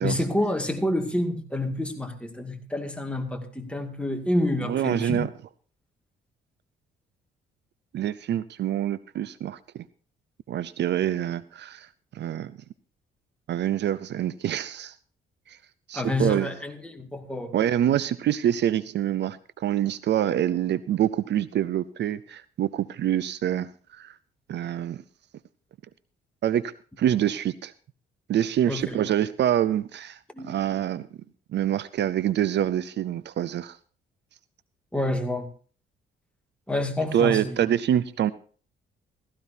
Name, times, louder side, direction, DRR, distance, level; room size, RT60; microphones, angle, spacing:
voice 1, 0.0-5.2 15.9-17.5 28.7-29.0 30.3-30.5 34.9-35.5 36.7-37.7, left 1 dB, 5° left, 2.2 m, -28 dB
voice 2, 4.7-5.3 7.9-9.9 10.5-11.9 12.1-12.6 13.5-15.0 15.5-15.6 15.9-16.5 17.5-24.2 24.5-25.0 26.4-27.7 28.3-31.0 31.5-33.8 37.1-38.3, right 11 dB, 60° right, 0.6 m, -26 dB
16.5 x 15.0 x 2.7 m
cardioid pair, 90°, 20 cm